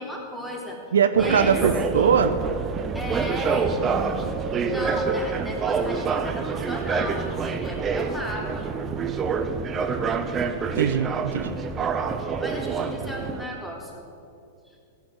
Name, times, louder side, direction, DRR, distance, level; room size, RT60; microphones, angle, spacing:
voice 1, 0.0-0.8 1.1-1.6 2.9-3.8 4.7-8.7 12.4-14.0 14.7-14.8, equal, 5° left, -2 dB, 3.5 m, -35 dB
voice 2, 0.9-2.4 10.7-11.6, right 7 dB, 75° right, 10 dB, 0.7 m, -21 dB
sound 1, 1.2-13.4, right 5 dB, 25° right, 1.0 m, -27 dB
15.5 x 7.2 x 9.3 m, 2.6 s
hypercardioid pair, 100°, 0 cm